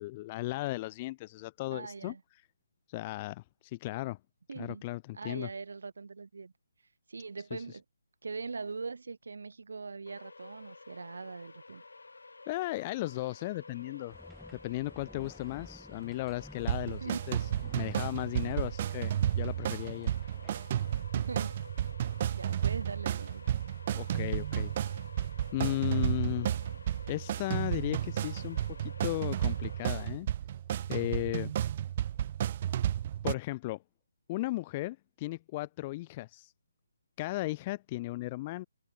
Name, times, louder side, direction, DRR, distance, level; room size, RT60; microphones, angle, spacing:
voice 1, 0.0-2.1 2.9-4.2 4.6-5.5 7.5-7.6 12.5-14.2 14.5-17.4 17.7-20.1 23.9-24.7 25.5-26.5 27.1-30.3 30.9-31.5 33.2-33.8 34.3-36.5 37.2-38.7, left 19 dB, 20° left, 0.9 m, -36 dB
voice 2, 1.7-2.2 4.5-4.8 5.1-6.5 7.1-7.8 8.2-11.8 17.0-17.2 21.1-21.5 21.8-21.9 22.3-23.4, right 4 dB, 70° right, 3.1 m, -41 dB
sound 1, 10.1-30.1, left 3 dB, 90° left, 1.9 m, -52 dB
sound 2, 14.1-20.9, left 1 dB, ahead, 1.7 m, -55 dB
sound 3, 16.7-33.3, right 11 dB, 30° right, 0.6 m, -32 dB
hypercardioid pair, 165°, 0 cm